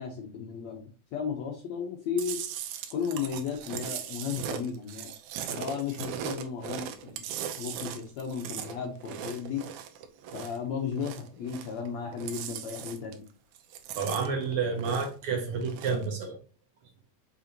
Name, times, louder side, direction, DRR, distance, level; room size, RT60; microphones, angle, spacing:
voice 1, 0.0-2.4 2.9-5.1 5.5-7.2 7.6-9.6 10.3-13.2, left 6 dB, 75° left, 1 dB, 1.7 m, -34 dB
Chewing mastication, 2.2-10.6 10.9-11.9 12.1-13.3 13.6-15.2 15.6-16.1, right 9 dB, 85° right, 2.6 m, -39 dB
voice 2, 13.9-16.4, right 5 dB, 65° right, 3 dB, 1.4 m, -30 dB
6.7 x 5.2 x 2.9 m, 0.37 s
omnidirectional pair, 4.2 m